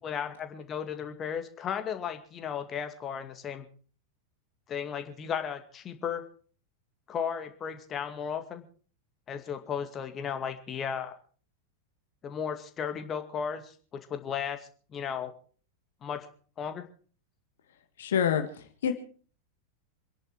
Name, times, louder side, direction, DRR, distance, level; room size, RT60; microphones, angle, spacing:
voice 1, 0.0-3.7 4.7-6.3 7.1-8.6 9.3-11.2 12.2-15.3 16.0-16.3 16.6-16.8, left 7 dB, 25° left, 7 dB, 2.3 m, -35 dB
voice 2, 18.0-18.9, left 8 dB, 60° left, 7 dB, 1.8 m, -27 dB
26.5 x 11.0 x 4.6 m, 0.43 s
figure-of-eight pair, 90°, 0 cm